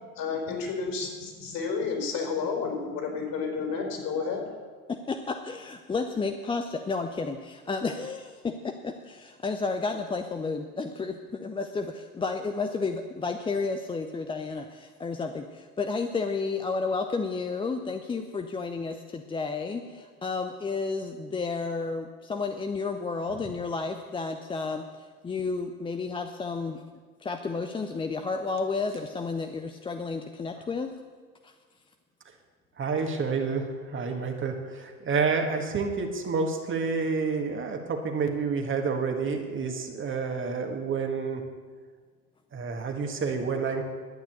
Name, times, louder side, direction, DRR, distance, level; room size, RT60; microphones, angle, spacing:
voice 1, 0.1-4.4, left 5 dB, 50° left, 1 dB, 4.3 m, -31 dB
voice 2, 4.9-26.8 27.2-30.9 31.4-31.5, left 4 dB, 10° left, 6 dB, 0.6 m, -32 dB
voice 3, 32.8-41.4 42.5-43.8, right 5 dB, 25° right, 3 dB, 1.6 m, -29 dB
12.0 x 9.1 x 6.9 m, 1.6 s
figure-of-eight pair, 70°, 44 cm